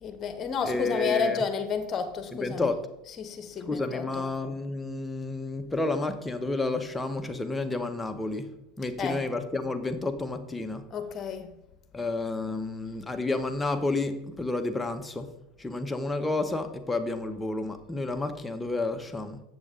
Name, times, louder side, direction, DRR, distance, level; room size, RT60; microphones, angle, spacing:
voice 1, 0.0-2.7 3.2-4.2 9.0-9.2 10.9-11.5, left 6 dB, 40° left, 8 dB, 1.1 m, -31 dB
voice 2, 0.6-1.4 2.3-2.8 3.6-8.5 8.8-10.9 11.9-15.3 15.6-19.4, left 2 dB, 10° left, 7 dB, 0.9 m, -30 dB
7.8 x 7.0 x 3.7 m, 0.88 s
hypercardioid pair, 95°, 0 cm